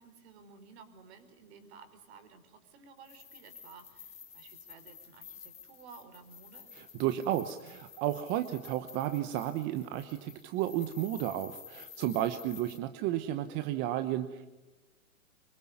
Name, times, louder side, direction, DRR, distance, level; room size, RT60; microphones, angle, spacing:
voice 1, 0.0-6.7, right 5 dB, 50° right, 10 dB, 4.7 m, -55 dB
sound 1, 3.0-12.8, left 7 dB, 15° left, 3.5 m, -52 dB
voice 2, 6.7-14.5, right 12 dB, 25° right, 10 dB, 1.1 m, -33 dB
25.0 x 23.5 x 9.7 m, 1.1 s
hypercardioid pair, 135°, 42 cm